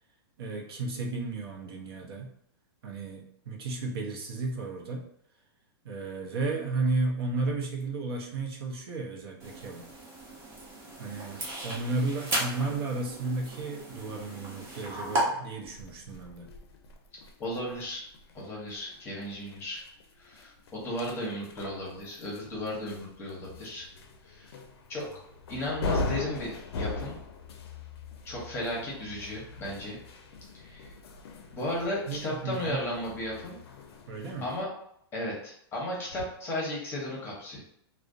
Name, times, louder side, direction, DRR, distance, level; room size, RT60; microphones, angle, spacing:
voice 1, 0.4-2.3 2.8-5.1 5.8-9.9 11.0-16.5 28.7-28.8 32.1-32.8 34.1-34.5, right 3 dB, 65° right, 0 dB, 0.6 m, -33 dB
sound 1, 9.4-15.2, right 1 dB, 20° right, 0.6 m, -36 dB
sound 2, 15.6-34.6, left 3 dB, 75° left, 0.4 m, -41 dB
voice 2, 17.4-18.0 18.3-19.8 20.2-23.9 24.3-24.5 24.9-25.1 25.5-27.2 28.2-30.0 30.5-30.9 31.5-33.6 34.4-34.7 35.1-37.6, left 1 dB, 20° left, -4 dB, 0.7 m, -35 dB
2.5 x 2.1 x 2.4 m, 0.72 s
hypercardioid pair, 155°, 13 cm